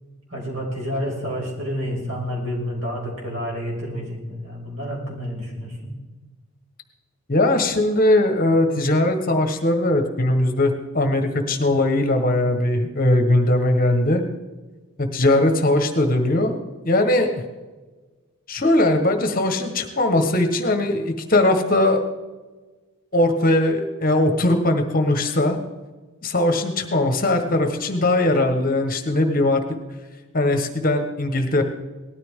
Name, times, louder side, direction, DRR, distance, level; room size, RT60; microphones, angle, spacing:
voice 1, 0.3-5.9, equal, 60° right, -2 dB, 5.8 m, -29 dB
voice 2, 7.3-14.2 15.0-16.6 16.8-17.3 18.5-22.0 23.1-25.6 26.2-29.6 30.3-31.6, left 1 dB, 40° left, 5 dB, 1.4 m, -20 dB
19.0 x 13.5 x 3.7 m, 1.3 s
head